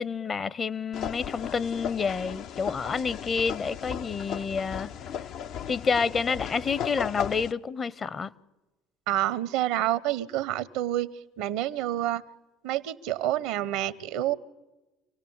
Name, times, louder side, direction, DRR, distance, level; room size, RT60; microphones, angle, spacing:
voice 1, 0.0-4.9 5.7-8.3, left 5 dB, 40° left, 0.9 m, -29 dB
sound 1, 0.9-7.5, left 8 dB, 65° left, 0.7 m, -36 dB
voice 2, 9.1-11.1 11.4-12.2 12.6-14.3, right 13 dB, 75° right, 0.9 m, -28 dB
27.0 x 17.5 x 8.8 m
hypercardioid pair, 65°, 0 cm